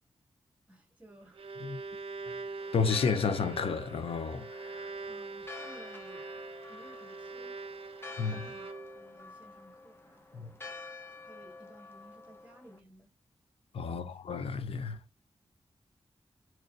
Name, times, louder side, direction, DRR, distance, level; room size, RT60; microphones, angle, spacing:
voice 1, 0.7-1.6 5.1-6.4 6.7-7.5 8.1-8.7 8.9-10.6 11.2-13.1 13.9-14.2 14.9-15.0, right 1 dB, 15° right, 1.9 m, -57 dB
Bowed string instrument, 1.1-9.1, right 4 dB, 70° right, 0.5 m, -43 dB
Church bell, 2.6-12.8, left 3 dB, 25° left, 0.7 m, -49 dB
voice 2, 2.7-4.9 8.2-8.5 10.3-10.5 13.7-15.0, left 5 dB, 75° left, 0.5 m, -32 dB
3.9 x 3.1 x 2.4 m
wide cardioid pair, 95°, 10 cm